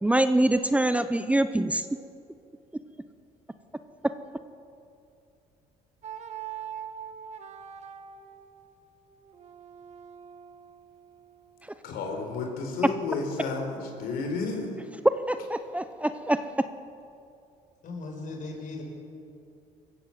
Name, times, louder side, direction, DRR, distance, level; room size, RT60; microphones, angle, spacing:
voice 1, 0.0-1.9 15.0-16.4, right 1 dB, 10° right, 10 dB, 0.7 m, -24 dB
sound 1, 6.0-11.9, right 9 dB, 45° right, 1.7 m, -43 dB
voice 2, 11.8-14.7, left 4 dB, 85° left, 2 dB, 4.4 m, -31 dB
voice 3, 17.8-18.8, left 3 dB, 55° left, 1 dB, 6.2 m, -37 dB
24.5 x 15.0 x 7.5 m, 2.6 s
cardioid pair, 100°, 16 cm